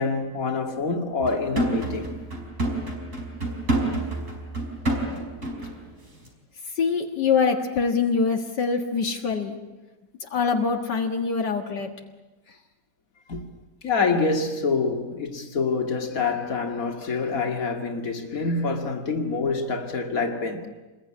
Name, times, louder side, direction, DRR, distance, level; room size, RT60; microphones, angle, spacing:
voice 1, 0.0-2.1 13.3-13.4 13.8-20.7, left 4 dB, 55° left, 2.7 m, -26 dB
sound 1, 1.2-5.8 6.1-6.3, right 1 dB, 50° right, 5.3 m, -28 dB
voice 2, 6.7-9.6 10.2-11.9, left 5 dB, 80° left, 2.3 m, -24 dB
28.5 x 21.5 x 9.8 m
omnidirectional pair, 1.8 m